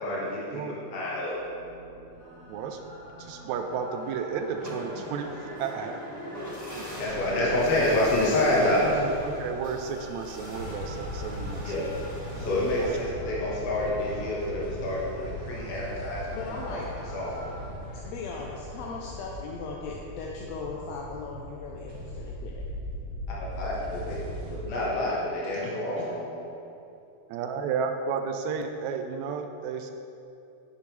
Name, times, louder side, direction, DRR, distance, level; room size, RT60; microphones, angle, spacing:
voice 1, 0.0-0.6 0.9-1.3 7.0-8.9 11.6-11.9 12.4-16.8 17.1-17.5 23.6-26.4, left 1 dB, 55° left, -6 dB, 2.4 m, -28 dB
sound 1, 1.3-17.7, right 1 dB, 35° left, 1.7 m, -46 dB
voice 2, 2.5-2.8 3.2-6.0 6.8-7.0 8.8-12.0 12.8-13.0 27.3-29.9, right 6 dB, 80° right, 6 dB, 1.8 m, -33 dB
sound 2, 4.0-13.1, equal, 10° left, 0.9 m, -41 dB
sound 3, 10.5-24.6, equal, 25° right, 1.8 m, -39 dB
voice 3, 16.3-17.1 18.0-22.6 25.5-26.1, left 4 dB, 75° left, -2 dB, 1.8 m, -38 dB
9.5 x 8.6 x 3.3 m, 2.8 s
omnidirectional pair, 3.4 m